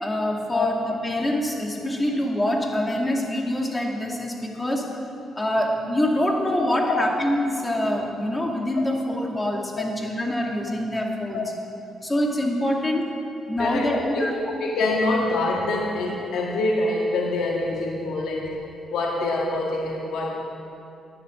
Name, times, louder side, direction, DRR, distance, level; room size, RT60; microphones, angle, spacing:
voice 1, 0.0-4.9 5.4-11.4 12.0-13.1 13.5-14.4, left 1 dB, 15° left, 0 dB, 2.4 m, -25 dB
voice 2, 13.6-14.3 14.6-18.5 18.9-20.3, left 2 dB, 80° left, -2 dB, 1.6 m, -25 dB
11.5 x 10.0 x 8.0 m, 2.8 s
cardioid pair, 90°, 0 cm